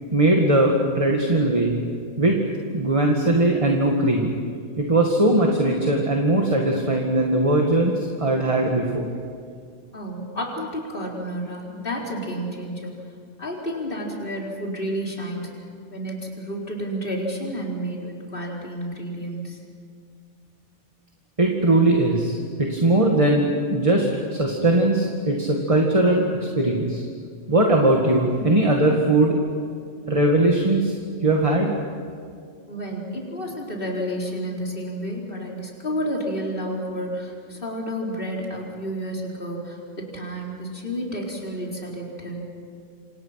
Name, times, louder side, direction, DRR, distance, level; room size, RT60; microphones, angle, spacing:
voice 1, 0.1-1.7 2.2-2.4 2.7-4.3 4.8-9.1 21.4-24.1 24.3-27.0 27.5-29.4 30.1-30.9 31.2-31.7, right 2 dB, 25° right, 0 dB, 2.2 m, -20 dB
voice 2, 9.9-12.9 13.4-15.5 15.9-19.6 32.7-42.4, equal, 45° left, -2 dB, 4.5 m, -30 dB
28.0 x 28.0 x 5.9 m, 2.2 s
omnidirectional pair, 1.3 m